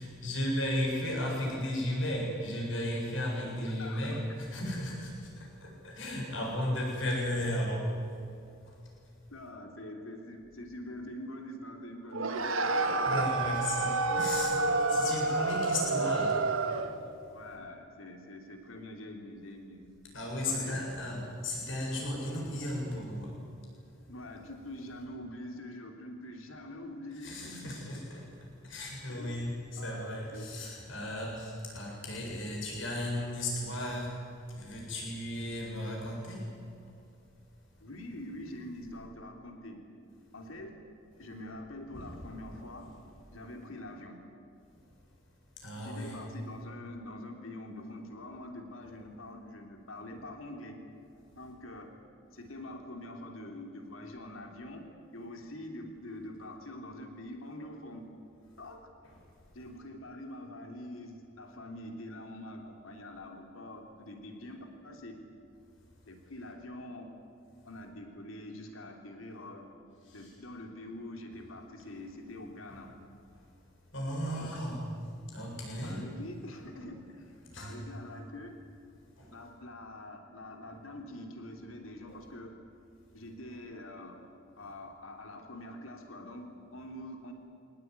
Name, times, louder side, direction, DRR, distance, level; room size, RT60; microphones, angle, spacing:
voice 1, 0.0-5.1 5.6-7.9 13.0-14.6 14.9-16.4 20.1-23.3 27.2-28.2 28.6-34.1 34.5-36.5 41.9-42.1 45.6-46.2 59.0-59.1 70.2-70.3 72.7-72.8 73.9-74.8 75.3-76.0 77.5-77.8 79.2-79.3 82.1-82.2, left 1 dB, 70° left, -1 dB, 7.7 m, -35 dB
voice 2, 1.2-1.7 3.6-4.0 9.3-13.2 14.9-15.3 17.2-19.8 20.5-20.9 24.1-27.9 29.1-29.4 29.8-30.5 37.8-39.8 40.3-40.8 41.2-42.9 43.3-44.2 45.8-50.8 51.3-51.9 52.3-58.1 58.6-58.8 59.5-65.2 66.1-67.1 67.6-69.6 70.1-72.9 74.2-74.6 75.8-78.6 79.3-82.6 83.1-84.2 84.6-87.3, left 1 dB, 90° left, 3 dB, 3.3 m, -45 dB
sound 1, 12.1-17.0, right 3 dB, 90° right, 1.7 m, -29 dB
23.5 x 19.0 x 9.8 m, 2.5 s
head